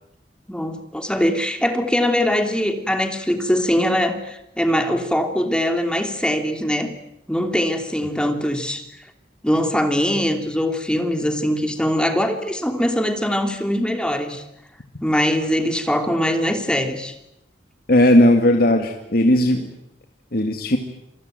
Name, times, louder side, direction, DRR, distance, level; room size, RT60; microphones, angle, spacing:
voice 1, 0.5-6.9 7.3-8.8 9.4-14.4 15.0-17.1, equal, 5° left, 6 dB, 3.0 m, -22 dB
voice 2, 17.9-19.6 20.3-20.8, left 1 dB, 60° left, 4 dB, 2.2 m, -16 dB
27.5 x 23.0 x 9.2 m, 0.83 s
head